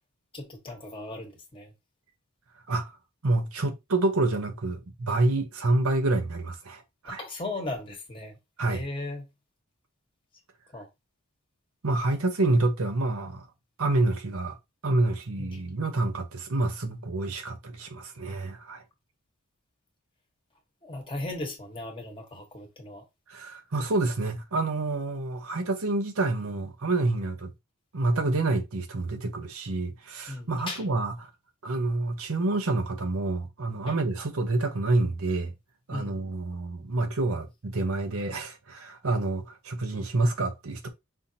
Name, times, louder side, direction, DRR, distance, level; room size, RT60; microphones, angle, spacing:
voice 1, 0.3-1.7 7.0-8.4 8.6-9.2 10.7-10.9 15.4-15.6 20.8-23.0 30.3-30.8 33.9-34.0 35.9-36.2, left 2 dB, 25° left, 1.2 m, -37 dB
voice 2, 3.2-7.2 8.6-8.9 11.8-13.4 13.8-14.6 14.8-18.8 23.3-27.5 27.9-31.3 31.6-35.5 35.9-40.9, right 2 dB, 90° right, 0.9 m, -28 dB
5.5 x 2.7 x 2.7 m
head